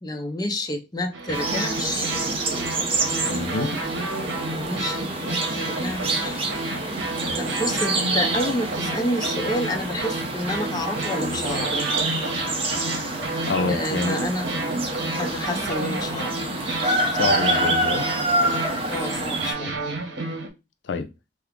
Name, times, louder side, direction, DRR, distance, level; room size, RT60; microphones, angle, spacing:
voice 1, 0.0-2.1 4.3-6.4 7.3-11.7 13.7-14.5 15.2-16.3 18.9-19.8, left 1 dB, 20° left, 0.5 m, -29 dB
sound 1, 1.1-20.5, right 2 dB, 90° right, 0.8 m, -31 dB
sound 2, 1.3-19.5, right 2 dB, 30° right, 0.7 m, -27 dB
voice 2, 3.3-3.7 13.5-14.2 17.1-18.1 20.8-21.1, left 4 dB, 75° left, 0.5 m, -27 dB
2.8 x 2.3 x 3.6 m
head